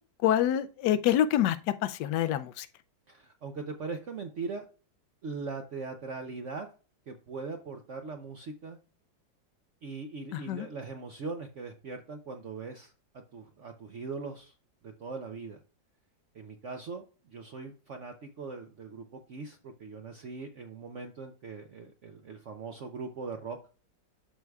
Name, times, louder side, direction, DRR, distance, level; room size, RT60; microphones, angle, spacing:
voice 1, 0.2-1.6 1.8-2.7 10.3-10.7, left 11 dB, 75° left, 1.1 m, -26 dB
voice 2, 3.1-4.7 5.2-6.7 7.1-8.8 9.8-14.5 14.8-15.6 16.3-23.6, right 4 dB, 65° right, 0.7 m, -40 dB
12.5 x 4.6 x 2.3 m
omnidirectional pair, 2.0 m